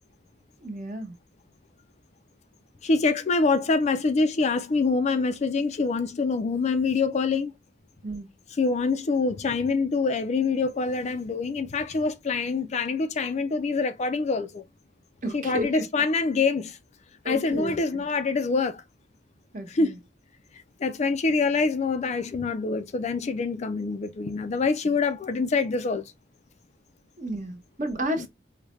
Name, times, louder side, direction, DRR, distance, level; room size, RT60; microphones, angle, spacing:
voice 1, 0.6-1.1 8.0-8.3 15.2-15.8 17.2-18.0 19.5-20.0 27.2-28.3, right 1 dB, 45° right, 1.0 m, -32 dB
voice 2, 2.8-7.5 8.5-14.6 15.3-16.8 17.3-18.8 19.7-20.0 20.8-26.1 28.2-28.3, left 4 dB, 35° left, 0.4 m, -25 dB
4.8 x 2.1 x 3.0 m
head